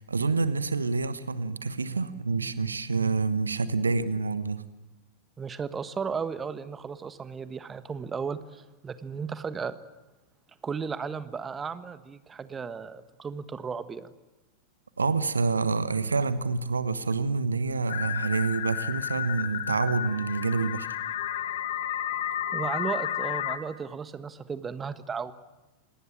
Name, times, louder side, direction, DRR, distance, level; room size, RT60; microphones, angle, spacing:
voice 1, 0.0-4.6 15.0-20.9, right 4 dB, 75° right, 15 dB, 1.2 m, -27 dB
voice 2, 5.4-9.7 10.6-14.1 22.5-25.3, right 6 dB, 20° right, 13 dB, 1.4 m, -35 dB
sound 1, 17.9-23.6, left 10 dB, 55° left, 2.0 m, -32 dB
27.0 x 19.0 x 8.9 m, 1.1 s
figure-of-eight pair, 90°, 0 cm